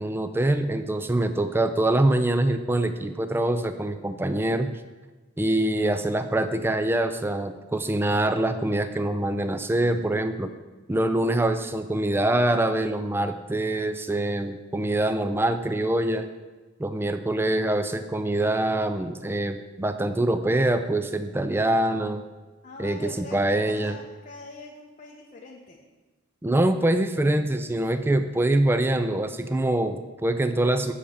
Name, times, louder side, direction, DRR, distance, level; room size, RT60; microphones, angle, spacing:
voice 1, 0.0-4.7 5.4-10.5 10.9-16.3 16.8-22.2 22.8-24.0 26.4-30.9, right 1 dB, 10° right, 9 dB, 0.3 m, -24 dB
voice 2, 22.6-25.8, left 3 dB, 35° left, -1 dB, 0.7 m, -43 dB
7.7 x 4.9 x 6.8 m, 1.2 s
head